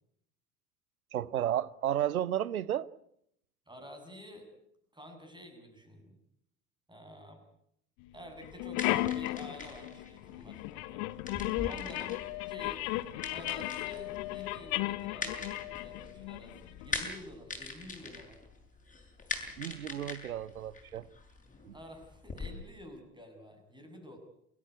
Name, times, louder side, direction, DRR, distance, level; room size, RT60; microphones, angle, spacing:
voice 1, 1.1-2.9 19.6-21.1 21.6-21.7, right 11 dB, 80° right, 0.9 m, -32 dB
voice 2, 3.7-4.5 4.9-6.2 6.9-7.4 8.1-11.1 11.6-12.9 13.2-18.4 21.7-24.2, equal, 10° right, 7.7 m, -50 dB
sound 1, 8.1-8.2 8.4-17.1, left 17 dB, 55° left, 1.3 m, -35 dB
sound 2, 8.5-22.5, left 4 dB, 20° left, 7.8 m, -43 dB
28.5 x 14.5 x 9.5 m
figure-of-eight pair, 65°, 42 cm